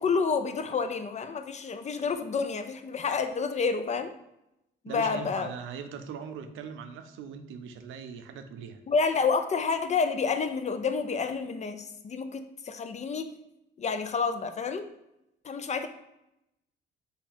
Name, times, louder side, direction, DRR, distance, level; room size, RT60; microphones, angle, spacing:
voice 1, 0.0-4.1 4.8-5.5 8.9-13.3 13.8-14.8 15.4-15.9, left 5 dB, 35° left, 9 dB, 0.4 m, -29 dB
voice 2, 4.9-8.8, right 6 dB, 85° right, 7 dB, 0.5 m, -40 dB
4.2 x 2.8 x 4.2 m, 0.86 s
cardioid pair, 90°, 20 cm